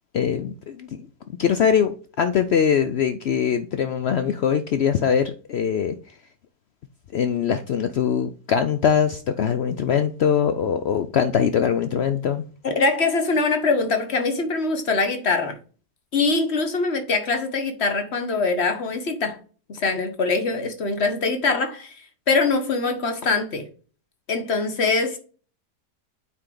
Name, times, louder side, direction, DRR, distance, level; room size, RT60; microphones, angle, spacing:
voice 1, 0.1-1.1 1.4-1.9 2.2-6.0 7.1-12.4, left 7 dB, 85° left, 0.5 m, -22 dB
voice 2, 12.6-15.6 16.1-19.4 19.7-22.0 22.3-23.7 24.3-25.2, left 3 dB, 45° left, 1.4 m, -23 dB
8.5 x 4.7 x 3.9 m
omnidirectional pair, 1.7 m